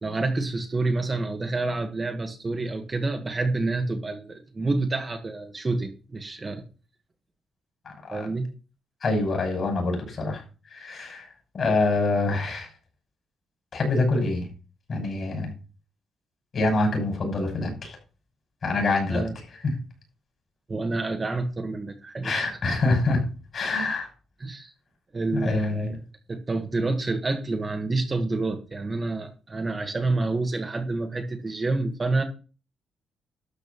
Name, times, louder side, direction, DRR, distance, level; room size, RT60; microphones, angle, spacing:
voice 1, 0.0-6.6 8.1-8.5 19.1-19.4 20.7-22.5 24.4-24.7 25.1-26.0 26.3-32.2, right 3 dB, 25° right, 4 dB, 1.7 m, -28 dB
voice 2, 7.8-8.3 9.0-10.4 10.7-11.3 11.5-12.7 13.7-14.5 14.9-15.5 16.5-18.0 18.6-19.7 22.2-23.2 23.5-24.1 25.3-26.0, left 2 dB, 45° left, 3 dB, 6.2 m, -25 dB
12.5 x 5.3 x 7.0 m, 0.35 s
cardioid pair, 120°, 0 cm